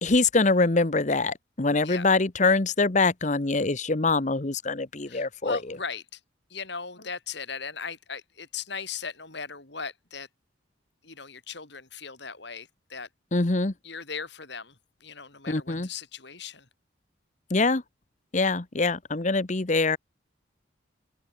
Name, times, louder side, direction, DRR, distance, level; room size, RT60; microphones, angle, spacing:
voice 1, 0.0-5.6 13.3-13.7 15.5-15.9 17.5-17.8 18.3-20.0, left 3 dB, 35° left, 1.0 m, -24 dB
voice 2, 5.1-6.2 6.5-10.3 11.0-13.1 13.8-16.7, left 5 dB, 60° left, 4.1 m, -38 dB
open air
head